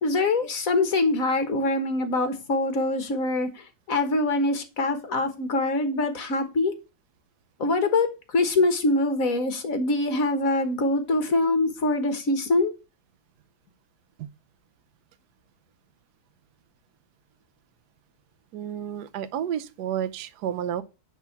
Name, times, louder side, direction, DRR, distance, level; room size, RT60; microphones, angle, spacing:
voice 1, 0.0-6.7 7.6-8.1 8.3-12.7, left 2 dB, 50° left, 1.7 m, -24 dB
voice 2, 18.5-20.8, right 10 dB, 70° right, 1.2 m, -31 dB
10.0 x 3.6 x 5.9 m
omnidirectional pair, 1.9 m